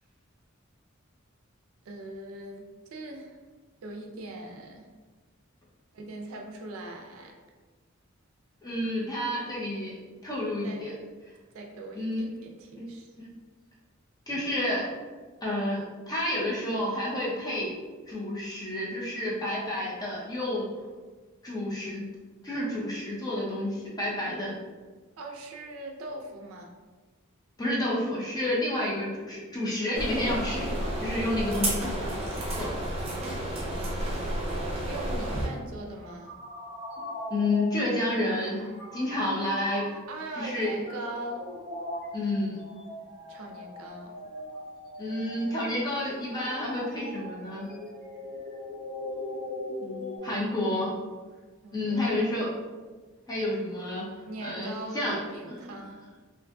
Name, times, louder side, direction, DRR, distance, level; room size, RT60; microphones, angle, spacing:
voice 1, 1.9-3.4 3.8-4.9 5.9-7.4 10.6-10.9 11.5-13.1 25.2-26.7 34.9-36.3 39.9-41.5 43.3-44.2 49.8-50.9 51.6-52.3 54.3-56.1, right 2 dB, 90° right, 2 dB, 0.4 m, -41 dB
voice 2, 8.6-9.9 10.2-10.9 11.9-12.3 12.8-12.9 13.2-13.3 14.3-14.9 15.4-17.7 18.1-20.7 21.4-22.0 22.4-24.5 27.6-32.1 32.5-32.8 37.3-39.9 40.4-40.8 42.1-42.6 45.0-47.7 50.2-50.9 51.7-52.5 53.3-54.0 54.4-55.2 55.5-55.8, left 1 dB, 20° left, -5 dB, 0.6 m, -30 dB
sound 1, 29.9-35.5, right 1 dB, 30° right, 0.6 m, -31 dB
sound 2, 35.7-50.2, left 1 dB, 50° left, 0.8 m, -41 dB
2.5 x 2.5 x 2.2 m, 1.3 s
head